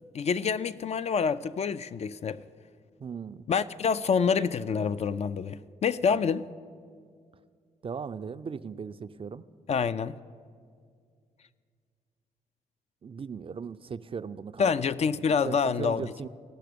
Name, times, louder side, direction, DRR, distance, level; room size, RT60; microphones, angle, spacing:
voice 1, 0.1-2.4 3.5-6.5 9.7-10.2 14.6-16.0, left 6 dB, 40° left, 0.4 m, -27 dB
voice 2, 3.0-3.5 7.8-9.4 13.0-14.7 15.4-16.3, right 6 dB, 35° right, 0.4 m, -38 dB
17.0 x 6.0 x 5.1 m
hypercardioid pair, 45°, 16 cm